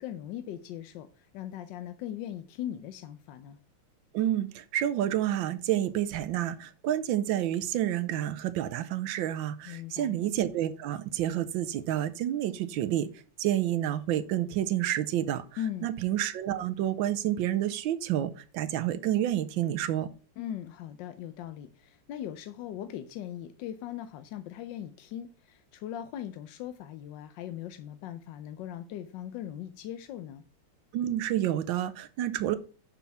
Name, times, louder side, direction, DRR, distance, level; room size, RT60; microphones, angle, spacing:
voice 1, 0.0-3.6 9.6-10.2 15.6-15.9 20.4-30.4, left 11 dB, 75° left, 1.1 m, -39 dB
voice 2, 4.1-13.1 13.4-15.4 15.8-20.1 30.9-32.6, right 12 dB, 70° right, 1.3 m, -29 dB
6.2 x 5.6 x 5.6 m
omnidirectional pair, 2.3 m